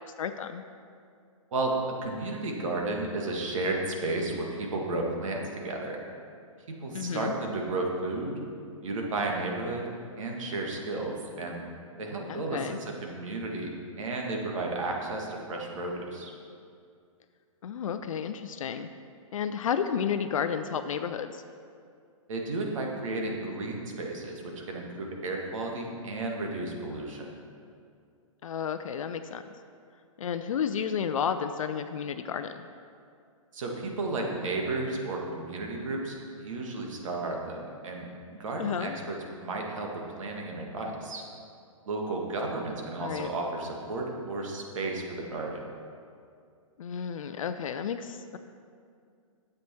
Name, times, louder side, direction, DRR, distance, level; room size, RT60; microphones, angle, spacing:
voice 1, 0.2-0.6 6.9-7.3 12.3-12.8 17.6-18.9 19.3-21.4 28.4-29.4 30.2-32.7 38.6-39.0 43.0-43.3 46.8-48.4, left 7 dB, 70° left, 9 dB, 0.5 m, -32 dB
voice 2, 1.5-6.0 6.7-8.5 8.8-9.8 10.2-11.6 12.0-13.7 14.0-16.3 22.3-27.3 33.5-41.2 41.9-45.6, right 2 dB, 65° right, 0 dB, 1.8 m, -33 dB
9.3 x 7.7 x 4.4 m, 2.4 s
hypercardioid pair, 125°, 18 cm